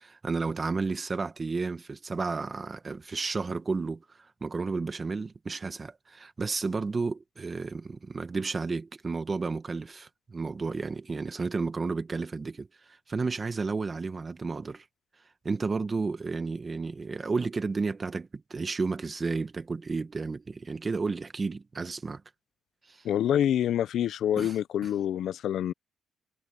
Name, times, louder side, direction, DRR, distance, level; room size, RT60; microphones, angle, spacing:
voice 1, 0.0-4.0 4.4-12.7 13.1-14.8 15.4-22.2 22.9-23.0 24.4-24.6, right 4 dB, 30° right, 1.7 m, -32 dB
voice 2, 23.0-25.7, left 10 dB, 70° left, 0.6 m, -26 dB
cardioid pair, 90°, 0 cm